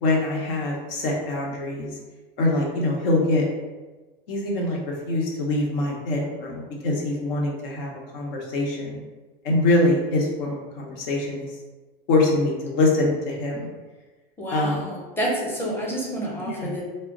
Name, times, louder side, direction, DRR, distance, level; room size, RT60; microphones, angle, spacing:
voice 1, 0.0-1.9 2.4-3.4 4.3-9.0 9.4-11.5 12.1-13.7 14.5-14.9 16.5-16.7, left 2 dB, 65° left, -2 dB, 0.9 m, -24 dB
voice 2, 14.4-16.8, right 1 dB, 5° left, -4 dB, 0.7 m, -29 dB
2.1 x 2.1 x 3.6 m, 1.2 s
hypercardioid pair, 100°, 30 cm